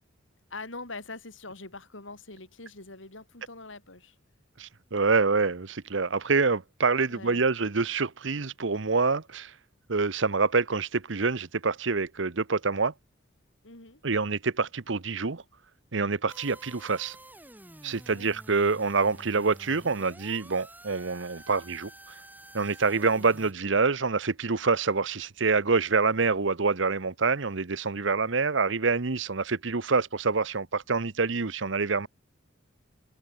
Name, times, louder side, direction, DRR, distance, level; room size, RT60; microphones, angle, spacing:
voice 1, 0.5-4.2 7.1-7.4 13.6-14.0 18.1-18.4, left 3 dB, 75° left, 5.6 m, -43 dB
voice 2, 4.6-9.5 9.9-12.9 14.0-15.4 15.9-17.2 17.8-22.2 22.5-32.1, right 4 dB, 70° right, 1.0 m, -26 dB
sound 1, 16.3-23.5, right 1 dB, 10° right, 6.0 m, -49 dB
head